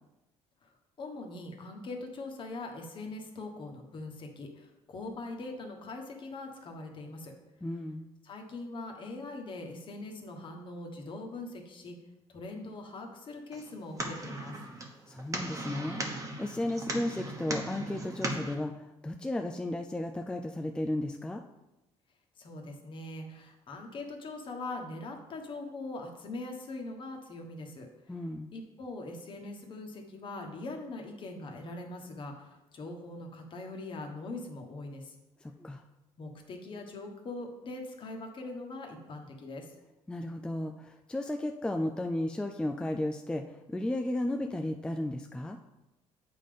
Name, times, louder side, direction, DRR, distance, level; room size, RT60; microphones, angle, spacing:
voice 1, 1.0-7.3 8.2-11.9 12.3-14.5 22.4-27.9 28.5-35.1 36.2-39.7, left 2 dB, 45° left, 2 dB, 1.3 m, -42 dB
voice 2, 7.6-8.1 15.1-21.4 28.1-28.5 35.4-35.8 40.1-45.6, left 1 dB, 10° left, 4 dB, 0.4 m, -34 dB
sound 1, 13.5-18.5, right 2 dB, 30° right, 1.2 m, -38 dB
8.3 x 3.8 x 5.1 m, 0.96 s
cardioid pair, 115°, 12 cm